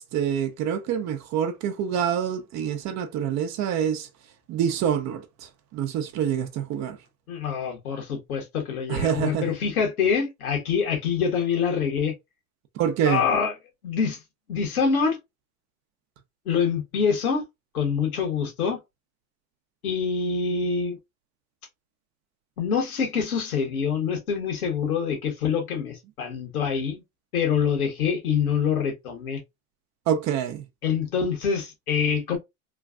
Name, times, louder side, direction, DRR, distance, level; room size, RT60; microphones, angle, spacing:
voice 1, 0.0-4.1 4.5-5.2 5.7-7.0 8.9-9.6 12.8-13.2 30.1-30.6, right 8 dB, 40° right, 0.7 m, -26 dB
voice 2, 7.3-12.1 13.0-13.5 13.8-14.2 14.5-15.2 16.4-17.4 17.7-18.8 19.8-21.0 22.6-27.0 27.3-29.4 30.8-32.4, left 6 dB, 90° left, 1.4 m, -25 dB
3.1 x 2.3 x 2.4 m
hypercardioid pair, 100°, 43 cm